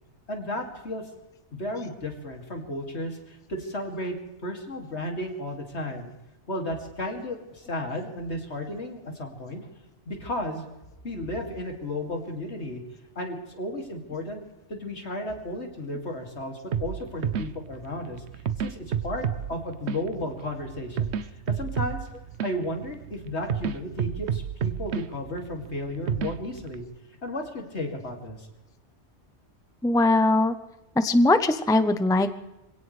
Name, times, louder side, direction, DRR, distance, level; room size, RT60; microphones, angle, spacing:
voice 1, 0.3-1.1 1.5-4.2 4.4-6.1 6.5-9.7 10.1-10.6 11.0-12.8 13.2-14.4 14.7-18.2 18.6-21.1 21.5-22.0 22.4-26.9 27.2-28.5, left 1 dB, 75° left, 3 dB, 2.8 m, -33 dB
sound 1, 16.7-26.8, right 8 dB, 75° right, 1.0 m, -32 dB
voice 2, 29.8-30.5 31.0-32.3, left 2 dB, 5° left, 10 dB, 0.6 m, -20 dB
25.5 x 17.5 x 3.3 m, 1.0 s
omnidirectional pair, 1.2 m